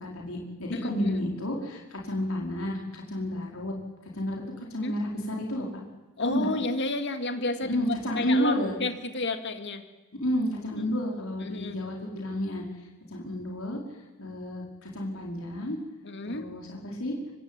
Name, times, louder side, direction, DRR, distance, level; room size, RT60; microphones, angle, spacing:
voice 1, 0.0-3.7 4.1-5.7 6.2-6.5 7.6-8.8 10.2-12.6 13.1-13.8 14.2-15.8 16.2-17.2, equal, 80° left, -1 dB, 5.0 m, -31 dB
voice 2, 0.7-1.2 4.8-5.0 6.2-7.7 8.2-9.8 10.8-10.9 11.4-11.8 16.0-16.5, left 2 dB, 55° left, 8 dB, 2.4 m, -31 dB
24.5 x 24.5 x 9.1 m, 1.1 s
head